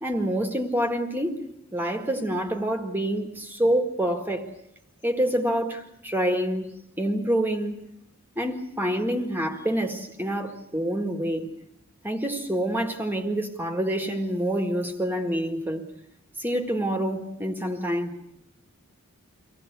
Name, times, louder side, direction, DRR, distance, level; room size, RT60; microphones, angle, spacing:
voice 1, 0.0-1.4 1.7-4.5 5.0-6.7 7.0-7.8 8.4-11.5 12.0-15.8 16.4-18.1, right 1 dB, 10° right, 1.8 m, -27 dB
25.0 x 17.0 x 8.2 m
head